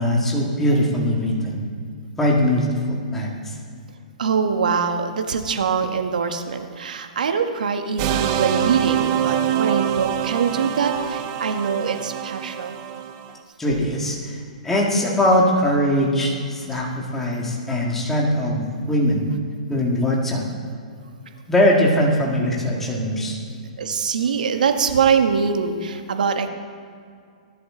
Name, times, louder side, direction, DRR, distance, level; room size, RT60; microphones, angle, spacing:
voice 1, 0.0-1.6 2.2-3.6 13.6-14.4 14.6-19.2 19.7-20.5 21.5-23.4, equal, 5° left, -3 dB, 1.9 m, -21 dB
voice 2, 4.2-12.8 16.7-16.8 23.8-26.5, right 6 dB, 80° right, 6 dB, 1.4 m, -23 dB
sound 1, 8.0-13.3, right 10 dB, 30° right, 0.7 m, -25 dB
18.0 x 11.0 x 3.8 m, 2.2 s
hypercardioid pair, 160°, 4 cm